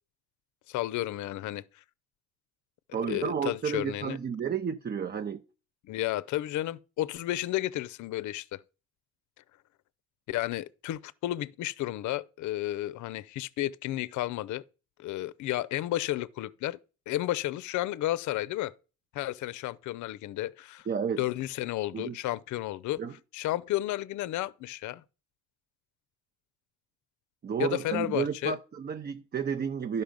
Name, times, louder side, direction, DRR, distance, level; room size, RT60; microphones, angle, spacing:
voice 1, 0.7-1.8 3.0-4.2 5.9-8.6 10.3-14.6 15.0-16.8 17.1-18.7 19.1-20.9 21.2-23.0 23.3-25.0 27.6-28.6, left 15 dB, 75° left, 0.5 m, -32 dB
voice 2, 2.9-5.4 20.9-21.2 21.9-22.2 23.0-23.1 27.4-30.0, right 7 dB, 35° right, 0.6 m, -31 dB
11.5 x 5.4 x 5.2 m
cardioid pair, 90°, 30 cm